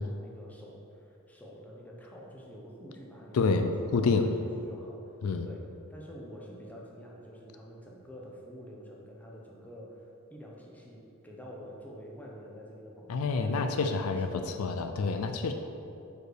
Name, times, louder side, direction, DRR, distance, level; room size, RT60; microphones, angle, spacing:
voice 1, 0.0-5.0 5.4-14.6, equal, 5° left, -3 dB, 0.8 m, -47 dB
voice 2, 3.3-3.7 3.9-4.3 5.2-5.5 13.1-15.5, left 4 dB, 70° left, 6 dB, 0.4 m, -28 dB
4.6 x 4.5 x 4.9 m, 2.7 s
head